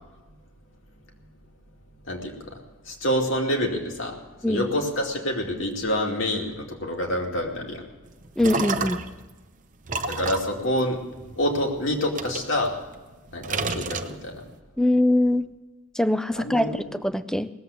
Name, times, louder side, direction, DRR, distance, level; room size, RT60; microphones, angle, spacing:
voice 1, 2.9-4.1 4.5-7.8 8.8-8.9 10.1-11.0 11.4-12.7 13.3-14.4 16.4-16.9, left 1 dB, 65° left, 1 dB, 2.5 m, -27 dB
sound 1, 8.1-9.2 9.9-11.6 12.1-13.1 13.4-14.5, right 4 dB, 35° right, 0.7 m, -31 dB
voice 2, 8.4-9.0 14.8-15.5 15.9-17.5, left 1 dB, 5° left, 13 dB, 0.4 m, -22 dB
19.0 x 7.8 x 8.3 m, 1.2 s
head